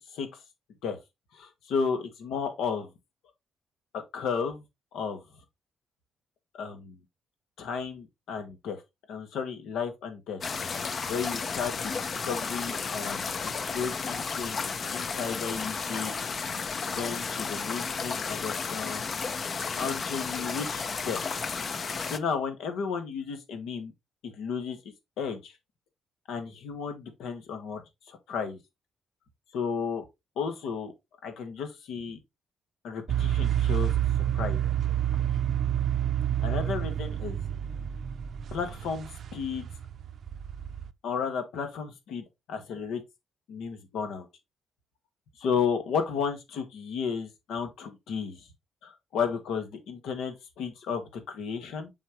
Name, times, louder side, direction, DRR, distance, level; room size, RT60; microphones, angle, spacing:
voice 1, 1.3-2.9 4.1-4.6 4.9-5.2 6.6-7.0 7.6-8.8 9.1-10.4 11.1-14.6 14.9-19.1 19.8-21.2 21.7-23.9 24.2-25.5 26.3-27.8 28.1-28.6 29.5-30.1 30.4-30.9 31.2-32.2 32.8-33.9 34.3-34.6 36.4-37.4 38.5-39.7 41.0-43.0 43.5-44.3 45.4-48.5 48.8-51.9, left 6 dB, 80° left, 1.7 m, -33 dB
sound 1, 10.4-22.2, left 5 dB, 45° left, 0.7 m, -33 dB
sound 2, 33.1-40.9, right 11 dB, 60° right, 0.5 m, -29 dB
7.2 x 4.4 x 3.1 m
cardioid pair, 90°, 0 cm